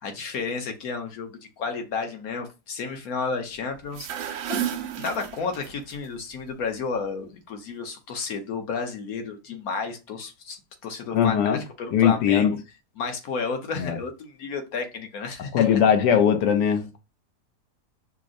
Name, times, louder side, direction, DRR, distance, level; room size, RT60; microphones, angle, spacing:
voice 1, 0.0-12.6 13.0-15.8, left 4 dB, 65° left, 1.2 m, -32 dB
sound 1, 3.8-5.9, right 10 dB, 70° right, 0.8 m, -32 dB
voice 2, 11.1-11.6 11.9-12.5 13.8-14.0 15.5-17.0, left 8 dB, 85° left, 1.2 m, -20 dB
6.1 x 2.0 x 2.5 m
omnidirectional pair, 1.8 m